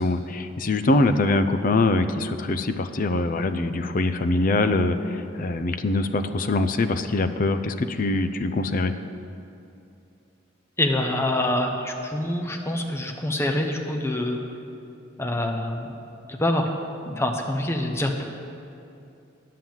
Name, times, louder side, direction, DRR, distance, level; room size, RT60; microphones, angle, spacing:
voice 1, 0.0-8.9, left 2 dB, 45° left, 10 dB, 0.5 m, -23 dB
voice 2, 10.8-14.4 15.2-15.9 16.2-16.7 17.1-18.2, left 1 dB, 15° left, 3 dB, 0.8 m, -25 dB
9.6 x 7.6 x 7.2 m, 2.6 s
head